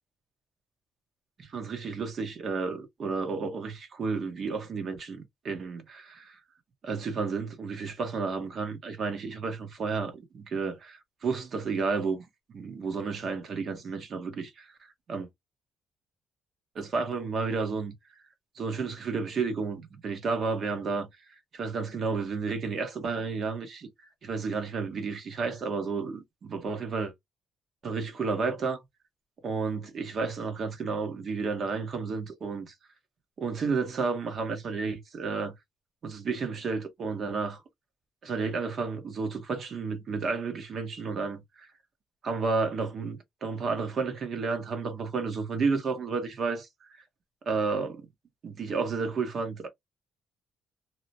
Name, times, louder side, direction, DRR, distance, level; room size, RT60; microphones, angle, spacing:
voice 1, 1.4-6.4 6.8-12.2 12.5-14.7 15.1-15.3 16.7-17.9 18.6-21.1 21.5-23.9 24.2-27.1 27.8-28.8 29.4-32.7 33.4-35.5 36.0-37.6 38.2-41.7 42.2-46.9 47.5-48.1 48.4-49.7, right 4 dB, 55° right, 1.0 m, -31 dB
2.8 x 2.1 x 2.7 m
cardioid pair, 90°, 0 cm